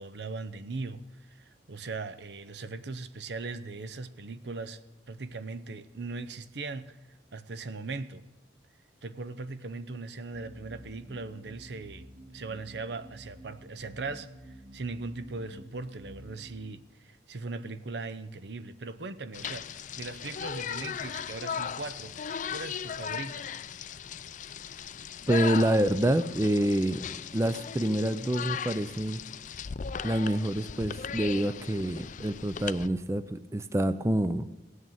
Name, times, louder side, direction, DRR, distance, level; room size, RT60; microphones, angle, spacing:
voice 1, 0.0-4.8 5.1-7.0 7.3-8.2 9.0-12.1 12.3-22.1 22.5-23.5, right 3 dB, 70° right, 0.7 m, -39 dB
sound 1, 10.3-16.7, right 1 dB, 45° right, 3.3 m, -50 dB
sound 2, 19.3-32.9, left 7 dB, 45° left, 0.4 m, -37 dB
voice 2, 25.3-29.2 30.0-34.5, right 1 dB, 15° right, 0.4 m, -27 dB
17.5 x 6.6 x 8.9 m
head